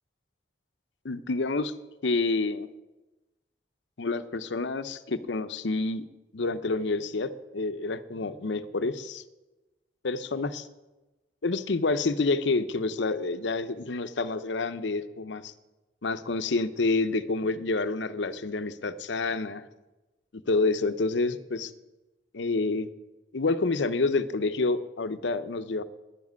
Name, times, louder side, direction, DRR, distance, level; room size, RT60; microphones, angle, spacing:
voice 1, 1.0-1.7 2.0-2.7 4.0-6.1 6.3-9.2 10.0-10.7 11.4-15.5 16.0-19.6 20.5-21.7 22.3-22.9 23.3-25.8, left 3 dB, 75° left, 12 dB, 0.7 m, -28 dB
10.5 x 7.4 x 9.3 m, 1.1 s
head